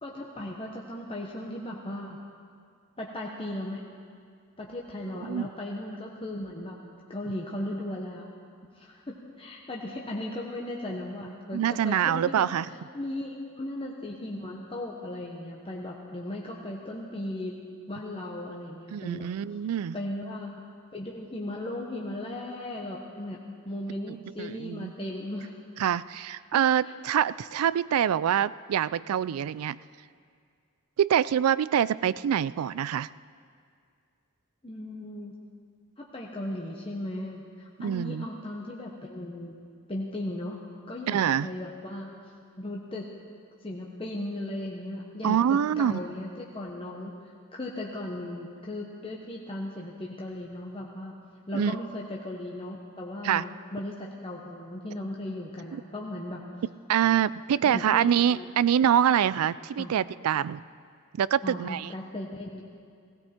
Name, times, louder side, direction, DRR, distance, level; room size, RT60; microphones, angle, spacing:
voice 1, 0.0-2.2 3.0-3.8 4.6-6.8 7.1-8.2 8.7-17.6 17.9-19.3 19.9-20.6 20.9-25.5 26.5-26.9 34.6-35.3 36.0-39.6 39.9-40.6 40.9-42.1 42.6-43.1 43.6-51.2 51.5-56.4 57.6-58.5 59.8-59.9 61.4-62.6, left 1 dB, 25° left, -2 dB, 1.0 m, -37 dB
voice 2, 11.5-12.7 18.9-20.0 24.4-24.9 25.8-29.8 31.0-33.1 37.8-38.3 41.1-41.5 45.2-45.9 51.5-51.7 53.2-53.4 55.7-55.8 56.9-60.6 61.1-61.9, right 9 dB, 80° right, 18 dB, 0.3 m, -25 dB
17.5 x 16.5 x 4.4 m, 2.2 s
head